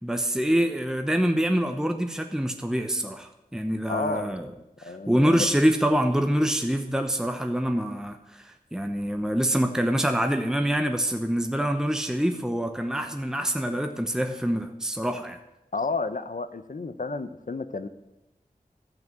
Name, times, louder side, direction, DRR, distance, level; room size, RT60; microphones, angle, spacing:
voice 1, 0.0-4.5 4.8-15.4, equal, 5° right, 6 dB, 1.0 m, -25 dB
voice 2, 3.9-4.4 4.8-5.5 15.7-17.9, left 3 dB, 60° left, 12 dB, 0.8 m, -31 dB
13.5 x 6.0 x 7.8 m, 0.94 s
wide cardioid pair, 40°, 16 cm